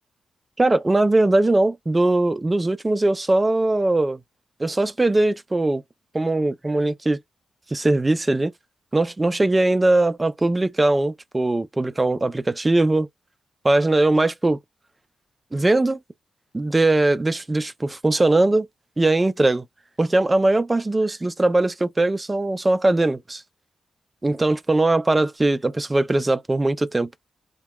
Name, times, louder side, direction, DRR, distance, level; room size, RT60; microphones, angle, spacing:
voice 1, 0.6-4.2 4.6-5.8 6.1-7.2 7.7-8.5 8.9-13.1 13.6-14.6 15.5-16.0 16.5-18.7 19.0-19.6 20.0-23.4 24.2-27.1, right 2 dB, 20° right, 0.3 m, -20 dB
2.7 x 2.2 x 2.2 m
cardioid pair, 105°, 0 cm